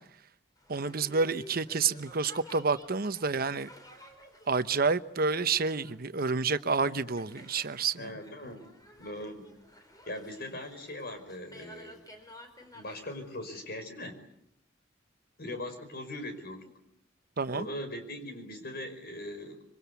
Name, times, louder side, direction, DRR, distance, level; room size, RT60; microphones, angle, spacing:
Boat Water vehicle, 0.6-13.7, left 1 dB, 20° left, 4.5 m, -53 dB
voice 1, 0.7-3.7 4.5-8.1 17.4-17.7, right 4 dB, 55° right, 1.0 m, -29 dB
voice 2, 8.0-8.7 9.0-9.4 10.1-12.0 12.7-14.2 15.4-16.7 17.5-19.6, left 1 dB, 55° left, 5.4 m, -40 dB
26.5 x 24.0 x 8.3 m
head